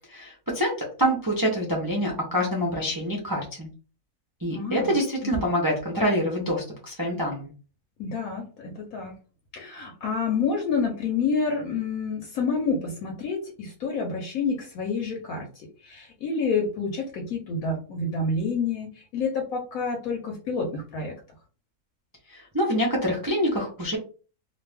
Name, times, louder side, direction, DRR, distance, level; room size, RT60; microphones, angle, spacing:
voice 1, 0.1-3.7 4.4-7.5 22.3-24.0, equal, 30° right, -3 dB, 0.4 m, -26 dB
voice 2, 4.5-4.9 5.2-5.5 8.0-9.1 9.5-21.1, left 4 dB, 70° left, 2 dB, 1.1 m, -28 dB
2.5 x 2.4 x 3.3 m, 0.36 s
omnidirectional pair, 1.6 m